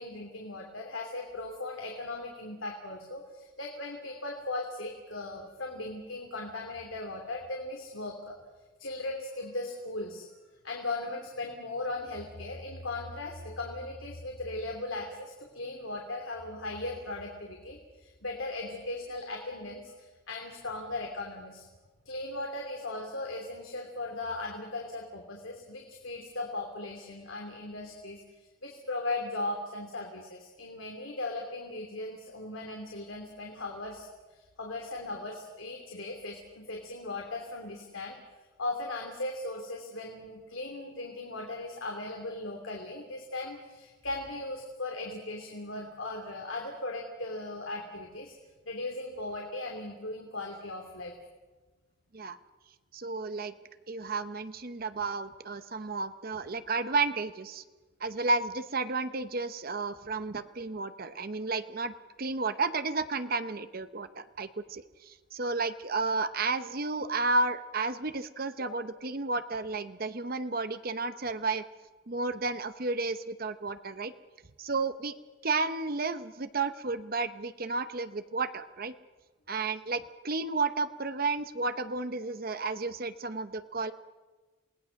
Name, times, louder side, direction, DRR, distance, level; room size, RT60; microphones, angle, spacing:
voice 1, 0.0-8.3 8.8-10.3 10.6-21.7 22.0-28.2 28.6-38.2 38.6-48.3 48.6-51.1 68.6-68.7, left 2 dB, 90° left, 1 dB, 2.9 m, -38 dB
voice 2, 52.9-53.5 53.9-57.6 58.0-71.6 72.1-74.1 74.6-75.1 75.4-78.9 79.5-83.9, right 3 dB, 50° right, 11 dB, 0.8 m, -32 dB
27.5 x 19.0 x 6.4 m, 1.3 s
head